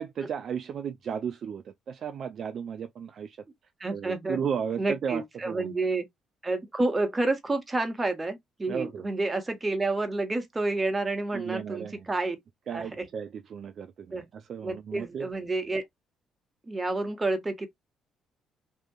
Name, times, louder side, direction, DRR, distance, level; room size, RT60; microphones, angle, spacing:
voice 1, 0.0-3.4 3.9-5.7 8.7-9.1 11.3-12.1 12.7-15.3, right 7 dB, 60° right, 0.3 m, -34 dB
voice 2, 3.8-4.4 4.8-6.0 6.4-12.4 12.7-13.0 14.1-14.3 14.6-15.8 16.7-17.7, right 2 dB, 25° right, 1.0 m, -29 dB
2.7 x 2.4 x 2.2 m
supercardioid pair, 65°, 0 cm